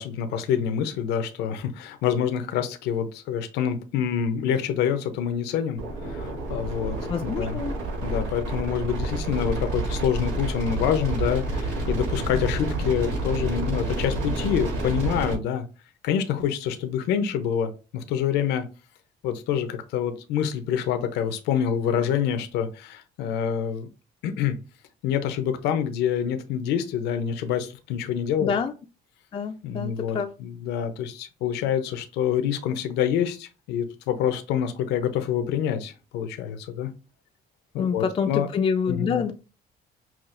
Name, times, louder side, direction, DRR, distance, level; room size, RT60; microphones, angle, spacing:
voice 1, 0.0-7.0 7.2-7.6 8.0-15.6 16.0-18.7 19.2-23.9 24.2-24.5 25.0-28.5 29.6-36.9 37.7-38.5 38.9-39.2, left 8 dB, 90° left, 8 dB, 0.6 m, -26 dB
sound 1, 5.8-15.3, right 2 dB, 90° right, 1.8 m, -29 dB
voice 2, 7.1-7.8 28.4-28.7 29.3-30.3 37.8-39.3, left 6 dB, 30° left, 5 dB, 0.4 m, -27 dB
5.8 x 2.4 x 2.5 m, 0.31 s
cardioid pair, 110°, 17 cm